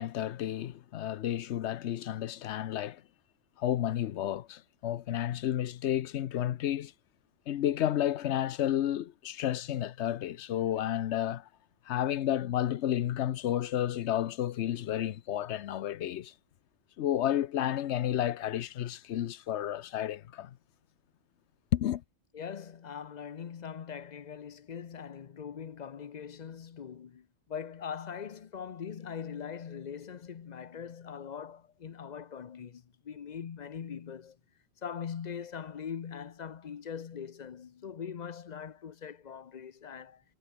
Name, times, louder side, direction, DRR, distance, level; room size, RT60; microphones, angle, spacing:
voice 1, 0.0-3.0 3.6-6.9 7.5-11.5 11.9-16.3 17.0-20.6 21.7-22.0, left 11 dB, 75° left, 1.0 m, -31 dB
voice 2, 22.3-34.4 34.8-40.2, left 7 dB, 45° left, 0.7 m, -41 dB
omnidirectional pair, 1.2 m